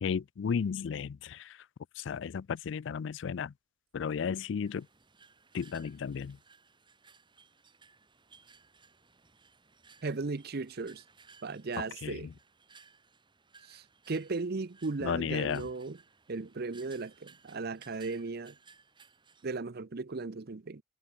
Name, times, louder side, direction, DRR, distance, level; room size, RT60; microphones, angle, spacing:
voice 1, 0.0-1.6 2.0-3.5 3.9-4.9 5.5-6.4 11.8-12.3 15.0-15.7, left 6 dB, 70° left, 0.4 m, -34 dB
sound 1, 4.6-19.5, right 5 dB, 25° right, 1.8 m, -60 dB
voice 2, 10.0-11.0 11.4-12.3 13.6-16.0 16.3-18.6 19.4-20.8, right 3 dB, 55° right, 0.7 m, -36 dB
head